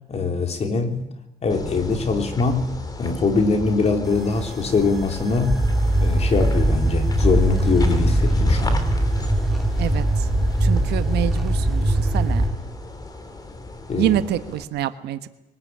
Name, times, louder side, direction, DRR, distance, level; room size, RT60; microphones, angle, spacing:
voice 1, 0.1-1.0 1.4-2.7 3.0-5.6 6.0-8.9 13.9-14.1, left 4 dB, 40° left, 5 dB, 3.8 m, -22 dB
sound 1, 1.5-14.6, left 2 dB, 20° left, 3.2 m, -32 dB
sound 2, 4.1-12.5, right 1 dB, ahead, 4.0 m, -21 dB
voice 2, 9.8-10.3 10.6-12.4 14.0-15.3, right 12 dB, 75° right, 11 dB, 1.4 m, -26 dB
23.0 x 19.0 x 8.7 m, 0.94 s
cardioid pair, 110°, 17 cm